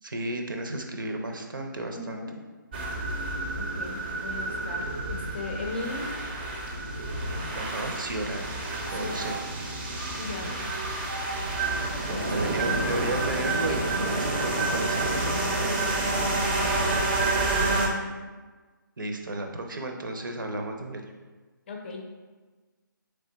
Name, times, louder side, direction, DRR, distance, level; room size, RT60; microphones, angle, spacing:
voice 1, 0.0-2.2 7.5-8.5 8.9-9.4 10.4-10.5 12.1-15.3 19.0-21.0, right 2 dB, 70° right, 3 dB, 0.7 m, -33 dB
voice 2, 1.9-2.3 3.6-4.8 5.1-6.1 9.0-9.3 10.2-10.7 12.1-12.3 13.0-13.1 15.6-16.4 17.3-18.3 21.7-22.0, left 3 dB, 30° left, 2 dB, 0.5 m, -38 dB
sound 1, 2.7-17.9, right 2 dB, 25° right, 0.6 m, -29 dB
3.6 x 3.5 x 3.9 m, 1.3 s
figure-of-eight pair, 150°, 11 cm